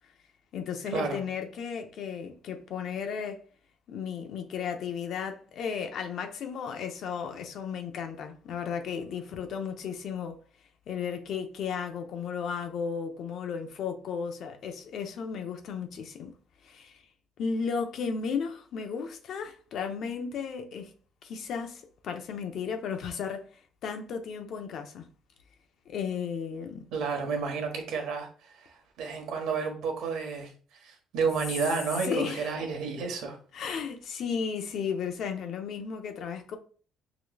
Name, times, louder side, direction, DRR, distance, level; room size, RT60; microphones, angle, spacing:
voice 1, 0.5-3.4 3.9-10.4 10.9-16.3 16.6-17.0 17.4-20.9 21.2-25.1 25.9-26.9 32.0-32.6 33.5-36.6, left 6 dB, 65° left, 0.8 m, -34 dB
voice 2, 26.9-28.3 28.5-28.7 29.0-30.5 30.8-33.4, right 5 dB, 80° right, 1.2 m, -31 dB
5.1 x 3.0 x 2.3 m
cardioid pair, 100°, 0 cm